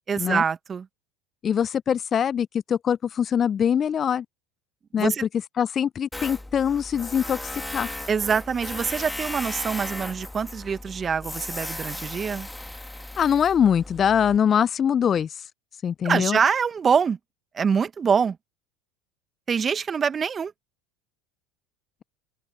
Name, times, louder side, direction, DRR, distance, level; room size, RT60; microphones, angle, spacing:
voice 1, 0.1-0.9 4.9-5.2 8.1-12.5 16.0-17.2 17.5-18.4 19.5-20.5, right 6 dB, 30° right, 1.1 m, -24 dB
voice 2, 1.4-4.2 4.9-5.1 5.6-7.9 13.2-15.3 15.8-16.4, left 8 dB, 35° left, 0.5 m, -23 dB
Tools, 6.1-14.4, left 1 dB, 5° left, 2.1 m, -36 dB
open air
hypercardioid pair, 75°, 0 cm